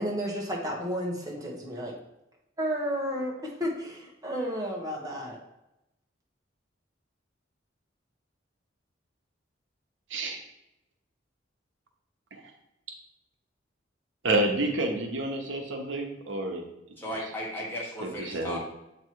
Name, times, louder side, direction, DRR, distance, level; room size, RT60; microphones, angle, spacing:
voice 1, 0.0-1.9 2.6-5.4, equal, 20° right, -2 dB, 1.2 m, -32 dB
voice 2, 14.2-16.6 18.0-18.6, right 2 dB, 85° right, 3 dB, 0.9 m, -29 dB
voice 3, 17.0-18.6, equal, 10° left, -4 dB, 1.4 m, -35 dB
7.5 x 3.0 x 4.6 m, 0.89 s
head